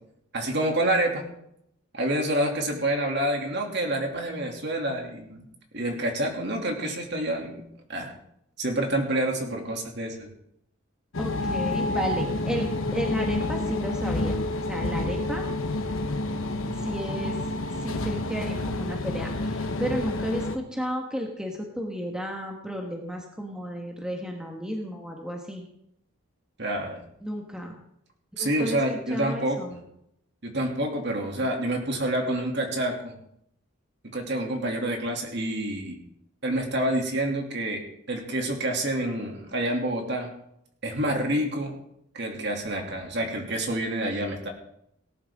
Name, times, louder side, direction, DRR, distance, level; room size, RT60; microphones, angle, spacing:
voice 1, 0.3-1.2 1.9-5.4 5.7-7.6 7.9-8.1 8.6-10.3 26.6-27.0 28.4-29.6 30.4-33.1 34.1-36.0 36.4-37.8 38.1-40.3 40.8-41.8 42.1-44.5, right 1 dB, 50° right, 1 dB, 2.7 m, -28 dB
sound 1, 11.1-20.6, left 2 dB, 75° left, 1.1 m, -29 dB
voice 2, 11.2-14.4 14.7-15.5 16.8-17.4 17.8-25.7 27.2-27.8 28.4-29.8, equal, 5° right, 1 dB, 1.4 m, -33 dB
18.5 x 11.5 x 3.7 m, 0.76 s
head